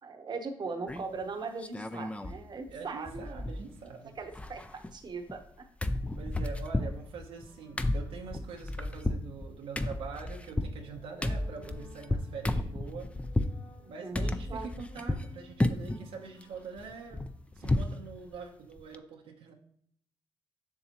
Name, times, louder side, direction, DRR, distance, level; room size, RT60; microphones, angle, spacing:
voice 1, 0.0-3.2 4.2-5.7 11.5-11.7 13.8-14.7, right 4 dB, 50° right, 6 dB, 0.9 m, -40 dB
sound 1, 0.9-1.2 1.6-2.4 2.7-2.8 3.1-3.9 4.2-5.5 5.8-13.6 14.1-15.3 15.6-16.0 16.4-18.0 18.3-18.4 18.8-19.0, left 1 dB, 15° left, 0.5 m, -33 dB
voice 2, 2.7-4.2 6.2-13.1 13.9-17.2 17.5-19.5, right 5 dB, 80° right, 2 dB, 0.9 m, -44 dB
sound 2, 5.9-18.4, left 2 dB, 75° left, 2.0 m, -58 dB
7.1 x 6.6 x 2.9 m, 0.65 s
supercardioid pair, 55°, 9 cm